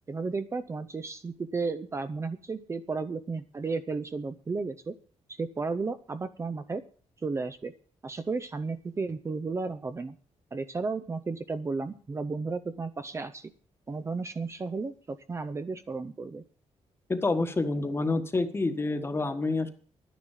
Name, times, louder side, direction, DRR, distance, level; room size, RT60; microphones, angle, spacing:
voice 1, 0.1-5.0 5.3-6.8 7.2-7.7 8.0-10.2 10.5-13.5 13.9-16.4, right 4 dB, 25° right, 10 dB, 0.7 m, -33 dB
voice 2, 17.1-19.7, left 3 dB, 20° left, 9 dB, 1.4 m, -28 dB
11.5 x 10.0 x 7.3 m, 0.43 s
wide cardioid pair, 155°, 11 cm